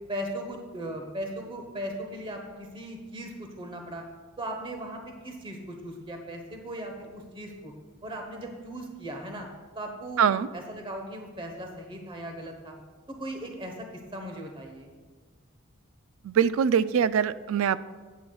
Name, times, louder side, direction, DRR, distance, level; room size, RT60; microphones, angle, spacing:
voice 1, 0.1-4.0 4.4-7.7 8.0-9.5 9.7-12.8 13.1-14.9, right 1 dB, 25° right, 3 dB, 1.1 m, -38 dB
voice 2, 10.2-10.5 16.2-17.8, right 7 dB, 75° right, 15 dB, 0.3 m, -23 dB
14.0 x 9.3 x 2.3 m, 1.4 s
head